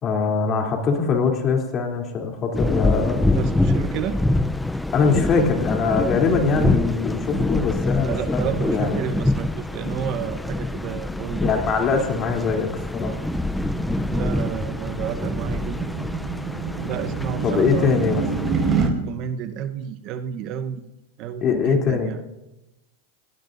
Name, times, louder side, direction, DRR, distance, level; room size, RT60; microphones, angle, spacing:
voice 1, 0.0-3.2 4.9-9.1 11.4-13.2 17.4-18.2 21.4-22.1, left 5 dB, 35° left, 1 dB, 3.2 m, -22 dB
sound 1, 2.5-18.9, left 2 dB, 5° left, 0.6 m, -26 dB
voice 2, 3.3-4.2 8.0-11.5 14.1-15.9 16.8-18.0 19.1-20.9 21.2-22.2, right 9 dB, 45° right, 9 dB, 1.0 m, -31 dB
sound 2, 12.5-18.9, right 5 dB, 30° right, 5.0 m, -28 dB
29.5 x 18.0 x 2.7 m, 0.96 s
hypercardioid pair, 115°, 0 cm